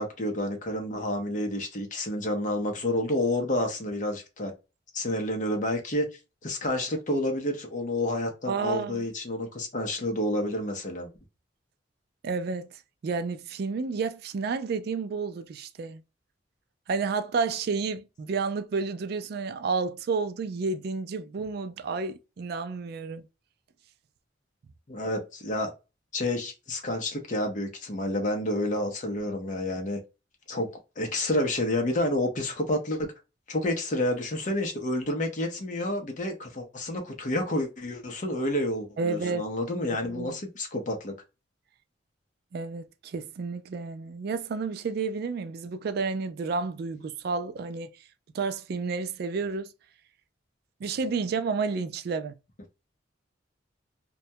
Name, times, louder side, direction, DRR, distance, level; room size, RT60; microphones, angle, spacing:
voice 1, 0.0-4.5 4.9-6.1 6.4-11.1 24.9-25.7 26.1-30.0 30.5-30.7 31.0-33.1 33.5-41.1, left 1 dB, 40° left, 0.6 m, -29 dB
voice 2, 8.5-9.0 12.2-12.7 13.0-16.0 16.9-23.2 39.0-39.5 39.9-40.3 42.5-47.9 48.3-49.7 50.8-52.3, right 4 dB, 55° right, 0.3 m, -31 dB
2.2 x 2.1 x 2.6 m
head